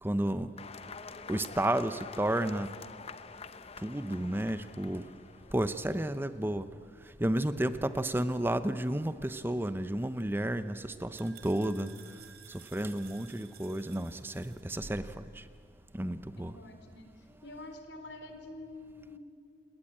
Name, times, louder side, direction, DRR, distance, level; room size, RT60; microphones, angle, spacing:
voice 1, 0.0-0.5 1.3-2.7 3.8-5.0 5.5-6.7 7.2-11.9 12.7-15.4 15.9-16.5, right 1 dB, 10° right, 12 dB, 0.8 m, -32 dB
sound 1, 0.6-5.7, left 5 dB, 35° left, 0.8 m, -47 dB
sound 2, 10.1-14.6, right 9 dB, 55° right, 2.3 m, -55 dB
voice 2, 16.4-17.1 17.4-19.2, left 2 dB, 85° left, 6 dB, 4.0 m, -47 dB
28.5 x 20.5 x 8.9 m, 2.3 s
head